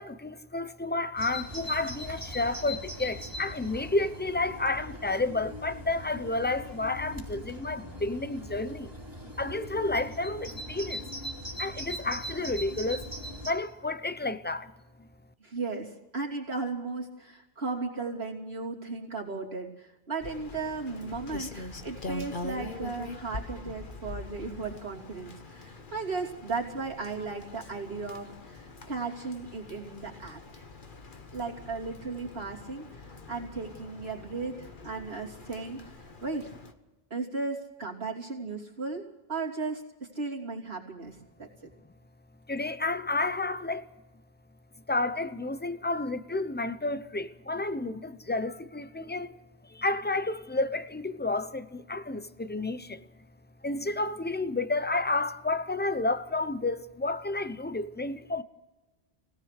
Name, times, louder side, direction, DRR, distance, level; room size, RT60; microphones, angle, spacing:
voice 1, 0.0-8.9 9.4-11.1 11.6-13.1 13.4-14.7 15.0-15.1 42.5-43.9 44.9-49.4 49.7-53.1 53.6-58.4, left 2 dB, 10° left, 0.6 m, -31 dB
Bird vocalization bird call bird song, 1.2-13.5, equal, 20° right, 3.0 m, -40 dB
voice 2, 15.4-30.7 31.3-36.5 37.1-41.7, right 4 dB, 80° right, 3.2 m, -36 dB
Rain, 20.2-36.7, left 2 dB, 50° left, 1.5 m, -43 dB
23.5 x 18.0 x 6.6 m
omnidirectional pair, 1.1 m